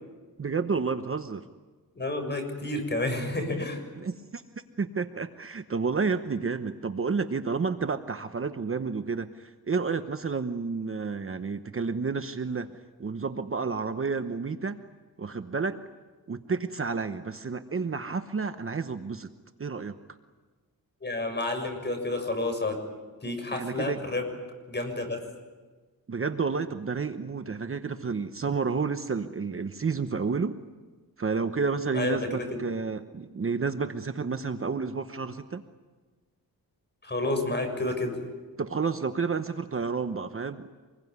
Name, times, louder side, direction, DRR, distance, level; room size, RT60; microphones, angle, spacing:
voice 1, 0.4-1.5 4.0-4.4 4.8-12.7 13.0-14.8 15.2-15.8 16.3-19.3 19.6-19.9 23.5-24.0 26.1-30.6 31.2-35.6 38.6-40.7, right 5 dB, 35° right, 9 dB, 1.0 m, -30 dB
voice 2, 1.9-3.8 21.0-22.8 23.2-24.2 24.7-25.2 31.9-32.6 37.0-38.2, left 2 dB, 30° left, 5 dB, 6.7 m, -30 dB
26.0 x 21.5 x 9.6 m, 1.3 s
wide cardioid pair, 115°, 35 cm